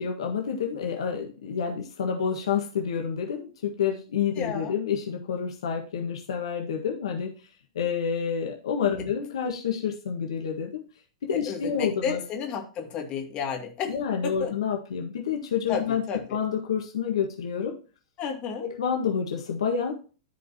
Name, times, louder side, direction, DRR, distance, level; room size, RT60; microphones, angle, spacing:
voice 1, 0.0-7.3 7.7-10.8 11.2-12.2 13.9-16.0 16.3-17.7 18.6-19.9, left 7 dB, 65° left, 1 dB, 1.6 m, -28 dB
voice 2, 4.4-4.7 11.5-13.9 14.2-14.5 15.7-16.4 18.2-18.6, left 6 dB, 35° left, 2 dB, 2.3 m, -32 dB
14.0 x 5.2 x 2.9 m, 0.35 s
figure-of-eight pair, 100°, 3 cm